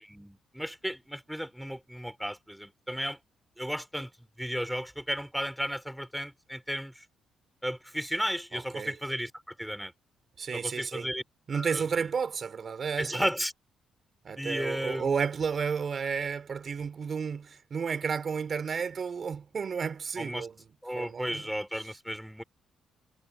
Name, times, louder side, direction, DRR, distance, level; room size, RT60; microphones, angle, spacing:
voice 1, 0.0-3.2 3.6-4.1 4.4-7.0 7.6-9.9 10.5-11.2 11.5-12.1 13.0-13.5 14.4-15.1 20.2-20.5 20.8-22.4, equal, ahead, 3.1 m, -34 dB
voice 2, 8.5-8.9 10.4-11.1 11.5-13.2 14.2-20.5 20.9-21.4, right 6 dB, 40° right, 2.6 m, -32 dB
cardioid pair, 120°, 0 cm